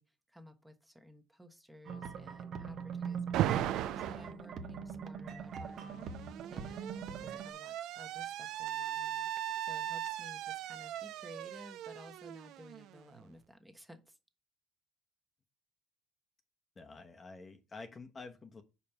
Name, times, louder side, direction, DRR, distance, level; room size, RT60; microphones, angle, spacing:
voice 1, 0.0-14.2, equal, 5° right, 1.1 m, -55 dB
sound 1, 1.9-7.5, right 6 dB, 55° right, 0.9 m, -42 dB
Alarm, 3.3-4.3 5.5-13.2, right 12 dB, 70° right, 0.4 m, -38 dB
voice 2, 16.8-18.6, left 3 dB, 30° left, 0.9 m, -49 dB
5.2 x 4.2 x 5.8 m
supercardioid pair, 85°, 0 cm